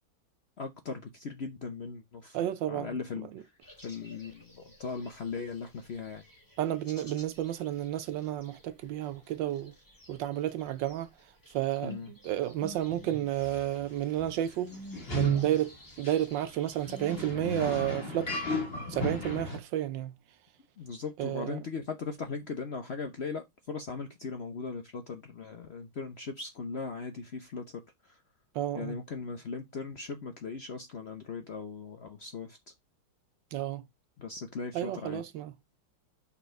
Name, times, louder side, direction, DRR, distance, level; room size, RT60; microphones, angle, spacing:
voice 1, 0.6-2.4 2.7-3.5 3.8-4.5 4.8-6.2 11.8-12.1 20.8-27.6 28.0-28.2 28.7-32.6 34.2-35.2, left 4 dB, 75° left, 0.5 m, -38 dB
voice 2, 2.3-2.9 3.3-3.4 6.6-9.7 10.1-11.1 11.5-14.7 15.1-18.4 18.9-20.1 21.2-21.6 28.5-29.0 33.5-33.8 34.7-35.5, right 12 dB, 75° right, 1.2 m, -31 dB
sound 1, 3.6-17.3, right 5 dB, 10° left, 1.7 m, -43 dB
sound 2, 13.4-13.6 14.2-14.3 14.9-15.5 16.0-16.2 16.8-19.6, left 3 dB, 30° left, 2.2 m, -35 dB
5.8 x 4.3 x 4.6 m
omnidirectional pair, 2.2 m